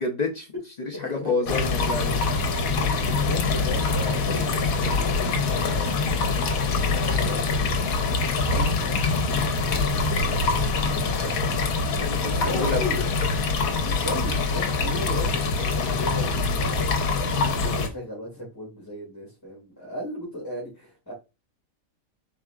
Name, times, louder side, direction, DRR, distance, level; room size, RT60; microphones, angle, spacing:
voice 1, 0.0-0.5 1.0-2.2 12.0-12.8, left 3 dB, 60° left, 2 dB, 0.4 m, -28 dB
voice 2, 1.0-1.5 2.9-8.0 8.4-11.3 11.9-13.0 13.8-21.1, left 1 dB, 15° left, -5 dB, 2.1 m, -37 dB
sound 1, 1.5-17.9, left 4 dB, 75° left, 1.2 m, -24 dB
4.7 x 4.1 x 2.3 m, 0.27 s
omnidirectional pair, 1.5 m